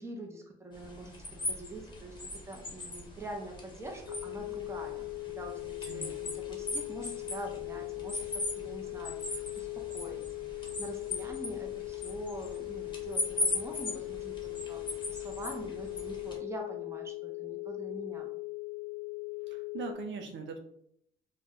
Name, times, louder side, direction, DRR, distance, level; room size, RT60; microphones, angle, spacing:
voice 1, 0.0-10.2 10.5-18.3, right 1 dB, 15° right, 1 dB, 0.7 m, -45 dB
sound 1, 0.7-16.4, left 2 dB, 25° left, 0.9 m, -39 dB
sound 2, 4.1-19.9, left 24 dB, 80° left, 0.4 m, -40 dB
voice 2, 19.5-20.6, right 5 dB, 70° right, 4 dB, 0.6 m, -41 dB
2.3 x 2.2 x 3.6 m, 0.71 s
cardioid pair, 90°, 20 cm